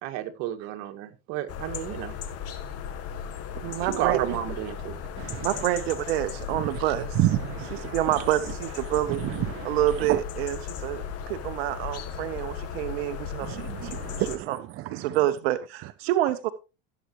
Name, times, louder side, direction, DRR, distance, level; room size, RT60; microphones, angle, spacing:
voice 1, 0.0-2.2 3.8-5.0, right 12 dB, 65° right, 1.9 m, -31 dB
sound 1, 1.5-14.4, left 7 dB, 55° left, 2.3 m, -36 dB
voice 2, 3.5-4.2 5.4-7.2 7.7-9.2 9.6-14.0 14.3-14.6 14.9-16.5, right 14 dB, 85° right, 1.0 m, -28 dB
voice 3, 5.2-5.5 6.5-6.7 7.2-8.0 9.2-10.2 13.4-15.1, right 15 dB, 45° right, 0.7 m, -30 dB
16.5 x 8.2 x 3.0 m
supercardioid pair, 105°, 30 cm